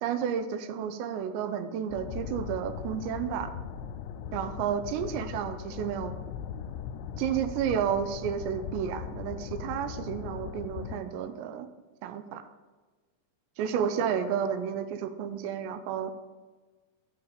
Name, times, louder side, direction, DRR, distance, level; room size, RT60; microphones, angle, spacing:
voice 1, 0.0-3.5 4.3-6.1 7.2-11.7 12.0-12.5 13.6-16.1, right 8 dB, 85° right, 10 dB, 2.9 m, -31 dB
sound 1, 1.9-11.0, left 8 dB, 80° left, 2.7 m, -39 dB
9.7 x 6.3 x 5.0 m, 1.3 s
omnidirectional pair, 5.1 m